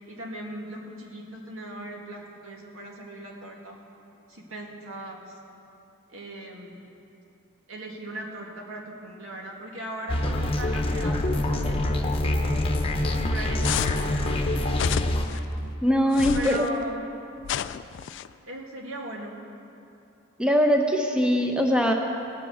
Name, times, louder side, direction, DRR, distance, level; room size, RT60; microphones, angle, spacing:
voice 1, 0.1-3.8 4.3-5.4 6.1-6.9 7.7-12.6 13.1-14.4 15.3-15.4 16.3-17.0 18.5-19.3, right 1 dB, 80° right, -1 dB, 2.1 m, -38 dB
sound 1, 10.1-15.3, left 1 dB, 25° left, 0.9 m, -25 dB
sound 2, 13.6-14.1 14.7-15.4 16.1-16.7 17.4-18.3, left 9 dB, 60° left, 0.3 m, -30 dB
voice 2, 15.8-16.6 20.4-21.9, equal, 5° right, 2 dB, 0.8 m, -21 dB
18.0 x 6.0 x 8.0 m, 2.7 s
head